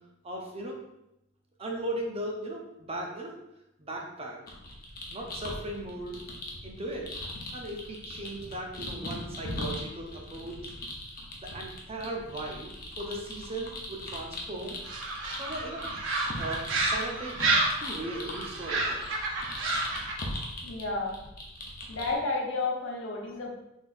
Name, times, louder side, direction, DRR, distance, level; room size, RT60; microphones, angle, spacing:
voice 1, 0.2-0.8 1.6-3.3 3.8-4.4 5.1-6.2 6.6-7.1 7.5-10.7 11.4-14.8 15.4-15.9 16.4-17.4 17.8-19.0, right 1 dB, 30° right, 0 dB, 0.6 m, -37 dB
sound 1, 4.5-22.1, left 1 dB, 50° left, 0.8 m, -40 dB
sound 2, 14.9-20.2, right 2 dB, 85° right, 0.7 m, -30 dB
voice 2, 20.6-21.2 21.9-23.5, left 3 dB, 80° left, -1 dB, 0.9 m, -31 dB
4.1 x 3.5 x 2.5 m, 0.86 s
head